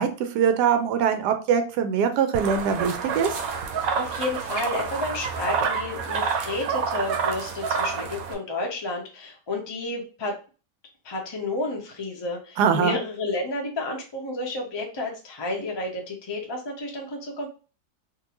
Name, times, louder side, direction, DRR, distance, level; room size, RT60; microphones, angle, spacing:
voice 1, 0.0-3.3 12.6-13.0, right 7 dB, 85° right, 8 dB, 1.2 m, -22 dB
sound 1, 2.3-8.3, right 6 dB, 70° right, 1.0 m, -28 dB
voice 2, 3.9-10.4 11.0-17.5, left 2 dB, 25° left, 0 dB, 0.6 m, -31 dB
3.7 x 2.6 x 2.9 m, 0.35 s
omnidirectional pair, 1.7 m